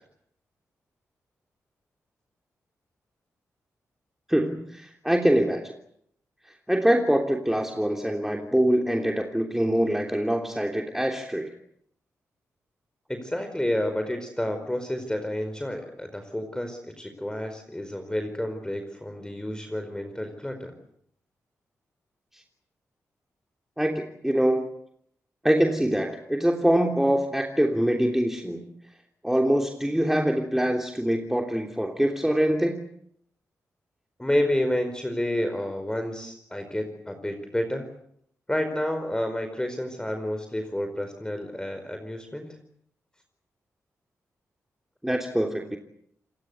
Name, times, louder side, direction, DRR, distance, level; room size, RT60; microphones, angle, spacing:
voice 1, 4.3-5.7 6.4-11.5 22.3-22.4 23.8-24.7 25.4-28.7 29.2-32.8 45.0-45.8, equal, 5° right, 3 dB, 3.2 m, -24 dB
voice 2, 13.1-20.7 34.2-37.9 38.5-42.5, left 1 dB, 10° left, 6 dB, 4.8 m, -30 dB
28.0 x 19.5 x 8.1 m, 0.71 s
supercardioid pair, 45°, 6 cm